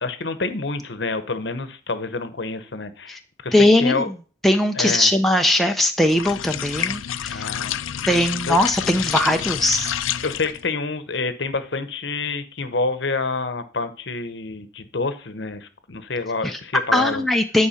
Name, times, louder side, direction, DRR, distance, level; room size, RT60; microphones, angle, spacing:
voice 1, 0.0-4.1 4.7-5.1 7.3-7.8 8.5-8.6 10.2-17.2, left 3 dB, 60° left, 11 dB, 0.9 m, -28 dB
voice 2, 3.5-4.0 4.4-7.5 8.1-9.9 16.4-16.6 16.9-17.7, left 1 dB, ahead, 3 dB, 0.5 m, -19 dB
sound 1, 6.0-10.7, left 10 dB, 85° left, 0.5 m, -28 dB
10.0 x 4.8 x 5.7 m, 0.38 s
head